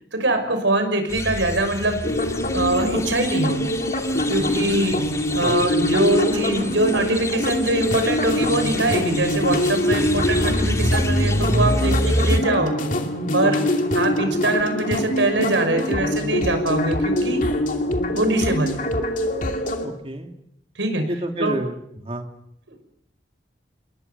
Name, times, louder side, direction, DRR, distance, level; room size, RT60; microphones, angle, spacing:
voice 1, 0.1-2.0 2.5-3.7 4.3-5.0 5.3-12.8 13.3-17.4 18.1-18.9 20.7-21.6 22.7-22.8, right 2 dB, 85° right, 8 dB, 6.1 m, -23 dB
sound 1, 1.1-12.4, left 1 dB, 15° left, 2.1 m, -27 dB
sound 2, 2.0-19.9, left 1 dB, 45° left, 2.7 m, -24 dB
voice 2, 19.8-20.3 21.1-22.3, right 1 dB, 30° right, 4 dB, 3.0 m, -29 dB
29.5 x 21.5 x 7.1 m, 0.74 s
head